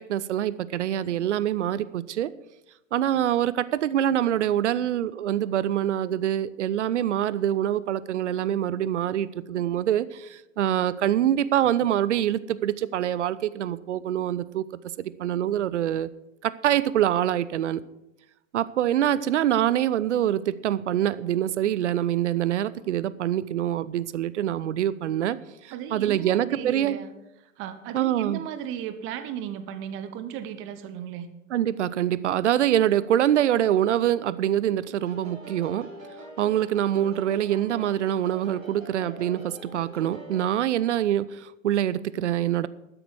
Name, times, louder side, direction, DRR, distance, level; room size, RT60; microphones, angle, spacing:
voice 1, 0.1-2.3 2.9-14.6 15.0-16.1 16.4-17.8 18.5-25.4 25.6-27.0 27.9-28.4 31.5-35.9 36.4-42.7, right 11 dB, 60° right, 18 dB, 0.7 m, -25 dB
voice 2, 25.7-27.1 27.6-31.3, right 9 dB, 30° right, 12 dB, 1.1 m, -35 dB
sound 1, 35.0-40.5, right 2 dB, 80° right, 3.2 m, -44 dB
13.0 x 9.9 x 4.7 m, 0.91 s
figure-of-eight pair, 100°, 40 cm